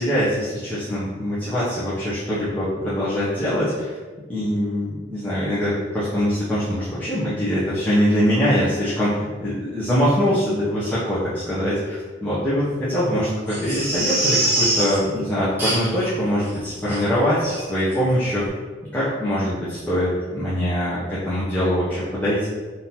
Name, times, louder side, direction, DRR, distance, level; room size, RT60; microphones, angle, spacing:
voice 1, 0.0-3.9 4.3-18.5 18.9-22.5, equal, 10° left, -12 dB, 0.8 m, -23 dB
Crying sobbing, 13.5-15.0 15.6-16.1 16.4-16.5 16.9-17.0 17.5-17.6 17.9-18.0, right 1 dB, 10° right, 1.2 m, -23 dB
3.7 x 2.8 x 4.2 m, 1.3 s
head